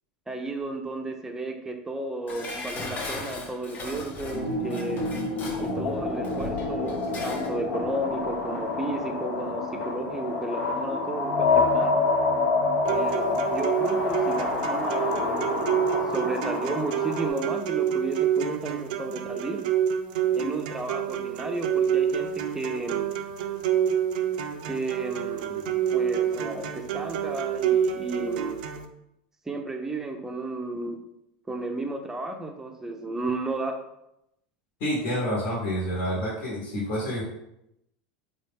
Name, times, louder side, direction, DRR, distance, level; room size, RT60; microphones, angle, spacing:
voice 1, 0.3-5.1 5.6-12.0 12.9-15.8 16.1-19.7 20.3-23.1 24.7-28.7 29.5-31.0 31.5-33.8, right 2 dB, 10° right, 4 dB, 0.5 m, -33 dB
Dishes pots and pans, 2.3-7.6 7.9-8.0, left 3 dB, 35° left, 0.8 m, -38 dB
sound 1, 4.3-17.3, left 3 dB, 70° left, 0.8 m, -27 dB
sound 2, 12.9-28.9, right 9 dB, 75° right, 0.4 m, -28 dB
voice 2, 34.8-37.2, equal, 55° left, -5 dB, 1.1 m, -28 dB
4.1 x 2.4 x 3.4 m, 0.82 s
supercardioid pair, 115°, 5 cm